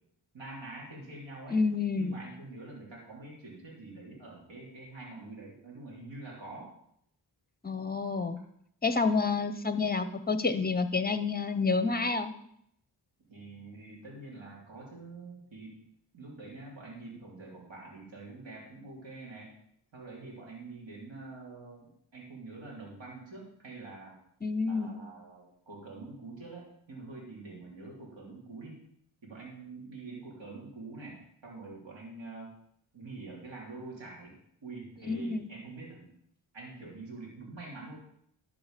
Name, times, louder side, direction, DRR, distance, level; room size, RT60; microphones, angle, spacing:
voice 1, 0.3-1.6 1.9-6.7 13.3-15.8 16.1-19.5 19.9-24.2 24.7-28.8 29.2-32.5 32.9-34.3 34.6-36.1 36.5-38.0, right 3 dB, 70° right, -3 dB, 3.4 m, -46 dB
voice 2, 1.5-2.2 7.6-8.4 8.8-12.3 24.4-24.9 35.1-35.5, left 4 dB, 20° left, 11 dB, 0.8 m, -29 dB
11.5 x 4.9 x 5.2 m, 0.72 s
cardioid pair, 50°, 47 cm